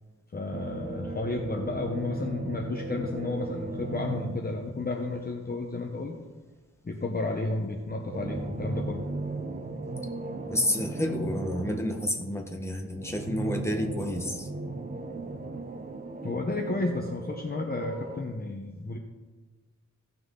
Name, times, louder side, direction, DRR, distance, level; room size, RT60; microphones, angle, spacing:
voice 1, 0.3-6.2 6.8-9.0 16.2-19.0, left 3 dB, 30° left, 1 dB, 0.8 m, -32 dB
sound 1, 0.5-5.1 8.0-12.1 13.0-18.2, right 3 dB, 30° right, 0.8 m, -37 dB
voice 2, 10.5-14.5, left 1 dB, 10° left, 2 dB, 1.3 m, -30 dB
16.0 x 5.9 x 3.8 m, 1.3 s
wide cardioid pair, 140°, 31 cm